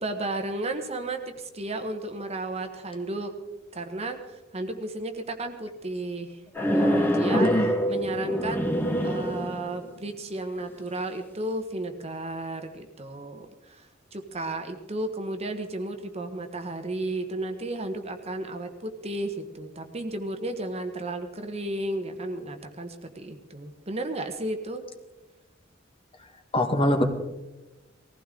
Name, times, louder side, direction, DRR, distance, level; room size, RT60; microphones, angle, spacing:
voice 1, 0.0-3.3 3.7-6.4 6.7-7.5 7.9-8.7 9.0-24.8, right 2 dB, 30° right, 6 dB, 1.2 m, -33 dB
sound 1, 6.5-9.9, equal, 10° left, 1.3 m, -25 dB
voice 2, 7.3-7.7 26.5-27.0, left 1 dB, 30° left, 5 dB, 1.4 m, -23 dB
19.5 x 15.5 x 3.8 m, 1.1 s
head